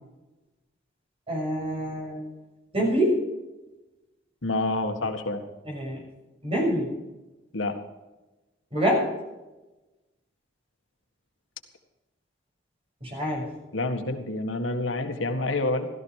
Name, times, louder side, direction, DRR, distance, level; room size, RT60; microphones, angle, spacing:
voice 1, 1.3-2.3 2.7-3.2 5.6-6.0 6.4-7.0 8.7-9.1 13.0-13.5, equal, 30° right, -1 dB, 6.5 m, -26 dB
voice 2, 4.4-5.4 7.5-7.8 13.7-15.9, left 2 dB, 85° left, 5 dB, 1.8 m, -28 dB
16.0 x 13.5 x 4.8 m, 1.1 s
head